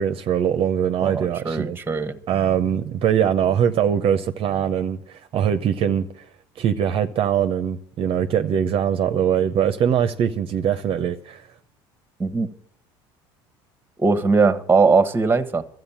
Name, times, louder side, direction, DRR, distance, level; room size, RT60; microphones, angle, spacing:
voice 1, 0.0-1.8 2.3-6.1 6.6-11.4, right 8 dB, 50° right, 0.7 m, -22 dB
voice 2, 1.0-2.2 12.2-12.5 14.0-15.7, right 4 dB, 20° right, 1.1 m, -20 dB
13.0 x 7.8 x 7.2 m
hypercardioid pair, 80°, 12 cm